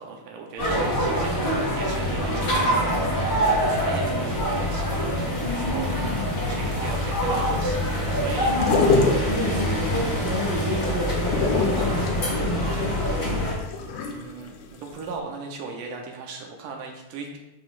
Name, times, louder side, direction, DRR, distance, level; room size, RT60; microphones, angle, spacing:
voice 1, 0.0-8.7 13.8-17.4, right 4 dB, 80° right, 1 dB, 2.3 m, -39 dB
sound 1, 0.6-13.5, equal, 50° left, 1.0 m, -25 dB
voice 2, 5.4-6.2 8.5-13.2, left 1 dB, 35° left, -8 dB, 1.1 m, -31 dB
sound 2, 6.8-14.7 15.0-15.1, left 4 dB, 85° left, 1.7 m, -27 dB
11.0 x 3.8 x 2.4 m, 0.93 s
omnidirectional pair, 3.9 m